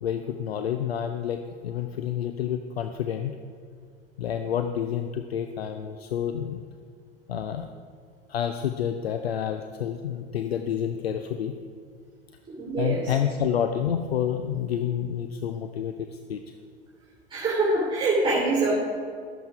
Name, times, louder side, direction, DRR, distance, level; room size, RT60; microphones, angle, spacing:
voice 1, 0.0-3.4 4.2-6.6 7.3-7.7 8.3-11.5 12.8-16.4, left 9 dB, 75° left, 7 dB, 0.6 m, -29 dB
voice 2, 12.6-13.1 17.3-18.7, right 3 dB, 15° right, -4 dB, 3.1 m, -24 dB
13.0 x 7.9 x 4.8 m, 2.1 s
figure-of-eight pair, 80°, 31 cm